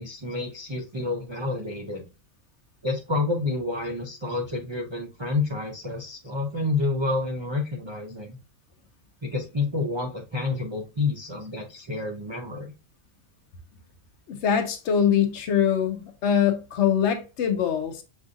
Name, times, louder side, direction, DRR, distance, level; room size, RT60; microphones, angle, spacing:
voice 1, 0.0-2.0 2.8-8.4 9.2-12.7, left 3 dB, 45° right, 0.3 m, -29 dB
voice 2, 14.3-18.0, left 8 dB, 65° left, 0.9 m, -23 dB
6.2 x 2.5 x 2.6 m
omnidirectional pair, 1.3 m